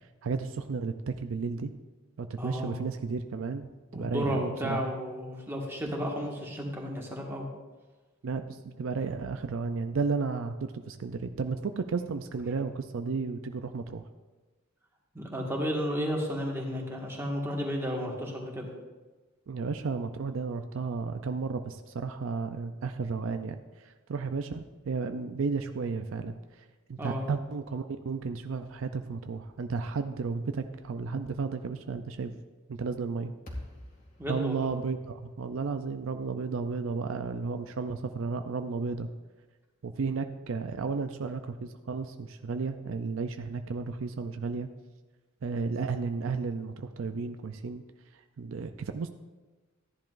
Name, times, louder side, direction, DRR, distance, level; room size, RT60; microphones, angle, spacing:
voice 1, 0.2-1.7 2.2-4.8 8.2-14.0 19.5-26.4 26.9-32.3 32.7-33.3 34.3-39.1 39.8-44.7 45.4-47.8 48.4-49.1, right 4 dB, 70° right, 8 dB, 0.4 m, -33 dB
voice 2, 2.4-2.7 3.9-7.5 15.1-18.7 27.0-27.2 34.2-34.7, equal, 10° right, -2 dB, 1.7 m, -33 dB
sound 1, 33.5-37.7, left 1 dB, 45° left, 2.2 m, -48 dB
14.5 x 10.5 x 2.5 m, 1.2 s
head